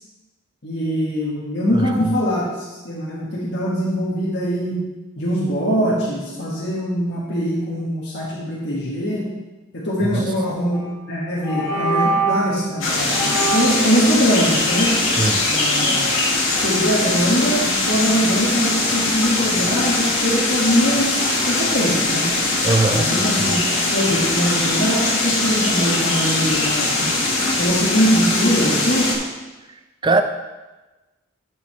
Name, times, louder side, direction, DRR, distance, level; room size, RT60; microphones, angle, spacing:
voice 1, 0.6-4.8 5.1-9.3 9.7-10.8 11.1-14.9 15.5-16.2 16.6-22.3 22.9-23.6 23.9-27.1 27.5-29.1, equal, 55° left, -7 dB, 1.7 m, -22 dB
voice 2, 1.7-2.1 10.0-10.3 15.2-15.4 22.6-23.1 30.0-30.2, right 2 dB, 20° right, 8 dB, 0.4 m, -20 dB
sound 1, 10.7-11.0 11.4-12.5 13.1-13.9, right 3 dB, 25° left, 2.1 m, -23 dB
sound 2, 12.8-29.2, left 2 dB, 70° left, 1.9 m, -21 dB
10.5 x 6.9 x 3.3 m, 1.2 s
head